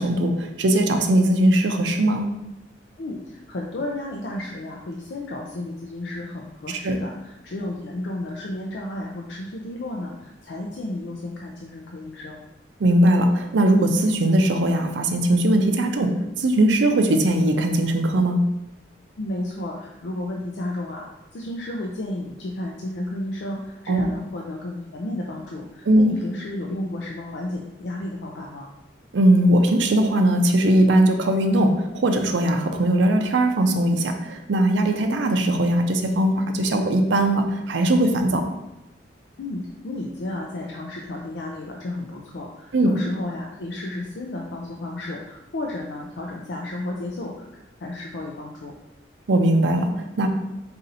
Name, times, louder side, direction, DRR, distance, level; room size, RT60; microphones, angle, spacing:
voice 1, 0.0-2.3 6.8-7.0 12.8-18.5 23.9-24.1 25.9-26.1 29.1-38.4 42.7-42.9 49.3-50.3, right 1 dB, 85° right, 5 dB, 0.5 m, -20 dB
voice 2, 3.0-12.4 19.2-28.7 39.4-47.5 47.8-48.7, left 1 dB, 70° left, -1 dB, 0.5 m, -32 dB
4.1 x 2.7 x 4.0 m, 0.90 s
head